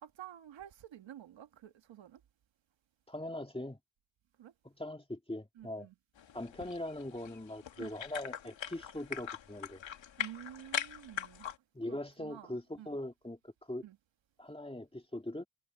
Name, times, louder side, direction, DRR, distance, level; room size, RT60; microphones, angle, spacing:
voice 1, 0.0-2.2 4.4-4.5 5.6-5.9 7.8-7.9 10.2-11.5 11.9-12.5 12.8-12.9 13.8-14.0, right 11 dB, 85° right, 1.8 m, -50 dB
voice 2, 3.1-3.8 4.6-5.9 6.3-9.8 11.7-13.8 14.4-15.4, left 1 dB, 10° left, 2.5 m, -41 dB
sound 1, 6.2-11.6, left 9 dB, 80° left, 2.3 m, -42 dB
cardioid pair, 55°, 44 cm